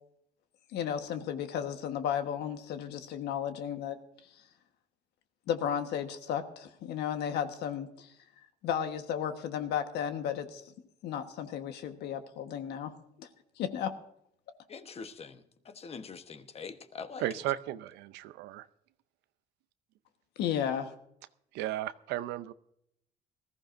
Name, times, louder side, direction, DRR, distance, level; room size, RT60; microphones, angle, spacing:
voice 1, 0.7-4.0 5.5-8.1 8.6-10.6 11.0-12.9 13.2-13.3 13.6-13.9 20.4-20.9, left 9 dB, 80° left, 8 dB, 1.3 m, -34 dB
voice 2, 14.7-17.2, left 5 dB, 35° left, 9 dB, 1.1 m, -44 dB
voice 3, 17.2-18.7 21.5-22.5, right 14 dB, 90° right, 14 dB, 0.6 m, -35 dB
19.5 x 14.5 x 2.6 m, 0.76 s
cardioid pair, 110°, 17 cm